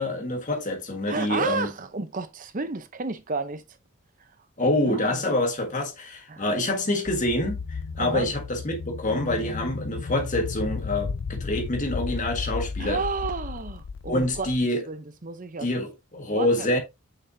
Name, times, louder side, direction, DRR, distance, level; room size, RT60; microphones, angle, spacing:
voice 1, 0.0-1.7 4.6-13.0 14.1-14.8 15.6-16.8, left 1 dB, 35° left, 1.6 m, -26 dB
voice 2, 1.1-3.6 4.9-5.2 6.3-6.5 8.0-8.3 12.8-14.5 14.9-15.7 16.3-16.7, right 4 dB, 35° right, 0.7 m, -31 dB
sound 1, 7.1-14.6, left 4 dB, 50° left, 0.4 m, -34 dB
6.8 x 5.8 x 2.7 m
head